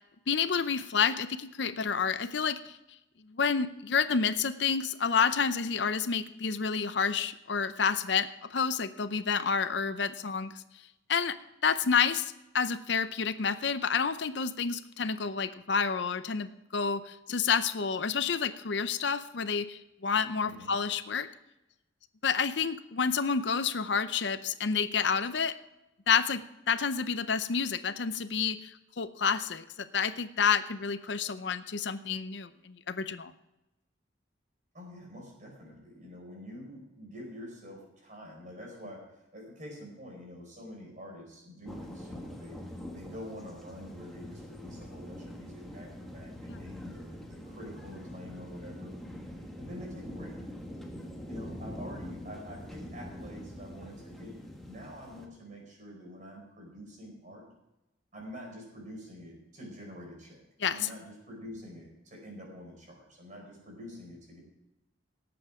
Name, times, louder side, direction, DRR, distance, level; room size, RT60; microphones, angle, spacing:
voice 1, 0.3-2.7 3.3-10.5 11.1-11.3 11.6-21.3 22.2-25.5 26.1-28.7 29.0-33.3 46.5-46.6 60.6-60.8, left 6 dB, 65° left, 12 dB, 0.6 m, -29 dB
voice 2, 20.4-20.7 34.7-48.9 49.6-50.4 51.2-54.3 54.7-57.5 58.1-60.4 60.7-64.4, equal, 40° right, 0 dB, 5.1 m, -46 dB
sound 1, 41.7-55.3, equal, ahead, 1.6 m, -44 dB
18.5 x 7.9 x 4.9 m, 0.93 s
head